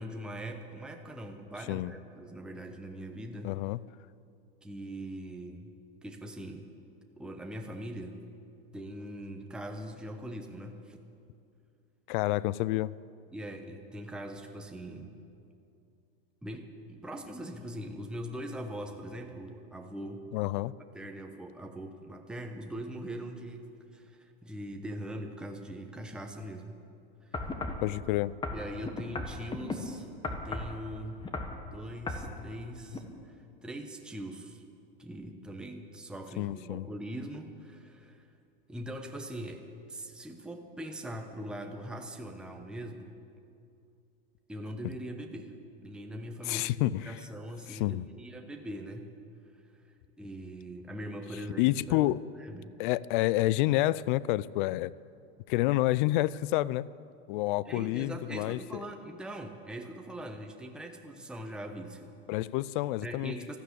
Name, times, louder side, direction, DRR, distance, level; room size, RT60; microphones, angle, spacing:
voice 1, 0.0-3.6 4.6-5.7 6.0-6.7 7.2-8.2 8.7-11.0 12.7-12.8 13.3-15.2 16.4-20.3 20.9-23.7 23.9-26.8 27.2-27.4 28.5-31.3 31.7-34.6 35.0-38.3 38.7-43.1 44.5-46.8 47.0-49.1 50.2-52.1 52.4-52.8 57.6-62.2 63.0-63.6, right 1 dB, 5° right, 3 dB, 1.0 m, -41 dB
voice 2, 3.4-3.8 12.1-12.9 20.3-20.7 27.8-28.3 36.4-36.8 46.5-47.0 47.7-48.0 51.6-52.2 52.8-54.9 55.5-56.9 57.3-58.8 62.3-63.3, left 17 dB, 55° left, 20 dB, 0.5 m, -28 dB
sound 1, 27.3-27.8 28.4-29.8 30.2-30.8 31.2-31.6 32.1-32.3 32.9-33.0, left 3 dB, 15° left, 1.5 m, -35 dB
13.0 x 12.5 x 8.4 m, 2.5 s
supercardioid pair, 125°, 29 cm